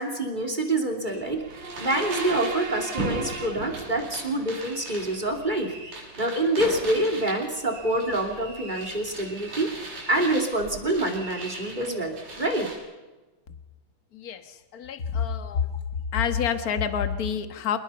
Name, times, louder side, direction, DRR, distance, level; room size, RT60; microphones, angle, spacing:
voice 1, 0.0-12.7, right 1 dB, 15° right, 4 dB, 2.6 m, -27 dB
sound 1, 1.1-12.8, right 2 dB, 80° right, 7.8 m, -38 dB
sound 2, 1.3-4.3, right 3 dB, 55° right, 0.8 m, -36 dB
voice 2, 14.1-15.7 16.1-17.8, left 7 dB, 50° left, 8 dB, 1.1 m, -27 dB
26.5 x 20.5 x 5.6 m, 1.2 s
omnidirectional pair, 3.5 m